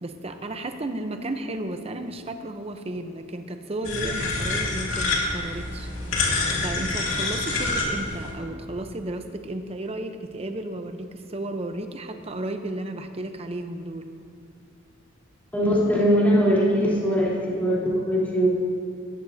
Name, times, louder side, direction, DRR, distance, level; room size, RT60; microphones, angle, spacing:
voice 1, 0.0-5.9 6.3-14.1, right 1 dB, 30° right, 7 dB, 0.7 m, -33 dB
sound 1, 3.8-8.3, left 3 dB, 70° left, 2.6 m, -27 dB
voice 2, 15.5-18.5, equal, 10° left, -7 dB, 3.5 m, -21 dB
19.5 x 13.0 x 2.8 m, 2.4 s
head